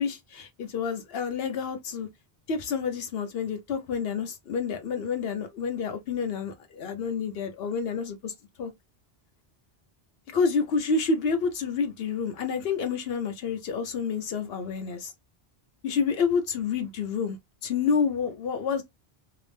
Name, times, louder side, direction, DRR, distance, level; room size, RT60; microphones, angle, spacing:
voice 1, 0.0-2.1 2.5-8.3 8.6-8.7 10.3-15.1 15.8-17.4 17.6-18.8, left 5 dB, 70° left, 0.9 m, -28 dB
2.8 x 2.0 x 3.2 m
omnidirectional pair, 1.0 m